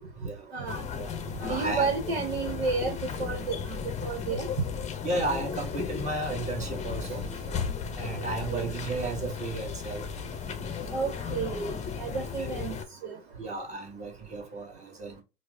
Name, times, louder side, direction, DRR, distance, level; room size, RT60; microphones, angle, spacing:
voice 1, 0.5-0.8 1.4-4.5 8.1-8.7 10.9-12.7 13.0-13.2, right 4 dB, 75° right, 0.9 m, -32 dB
sound 1, 0.7-12.8, left 6 dB, 20° left, 0.7 m, -35 dB
voice 2, 1.4-1.9 5.0-7.2 8.0-10.0 12.0-12.7 13.4-15.2, right 2 dB, 25° right, 1.4 m, -34 dB
4.7 x 2.1 x 2.4 m
hypercardioid pair, 85°, 31 cm